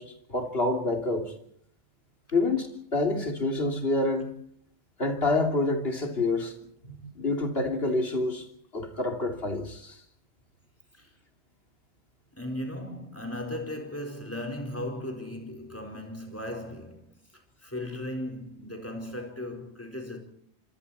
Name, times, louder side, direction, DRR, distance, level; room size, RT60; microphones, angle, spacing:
voice 1, 0.0-1.3 2.3-4.3 5.0-6.5 6.8-8.5 8.7-10.0, left 2 dB, 60° left, 3.3 m, -27 dB
voice 2, 12.3-17.1 17.6-20.2, left 1 dB, 10° left, 4.5 m, -36 dB
26.5 x 26.0 x 4.3 m
omnidirectional pair, 1.1 m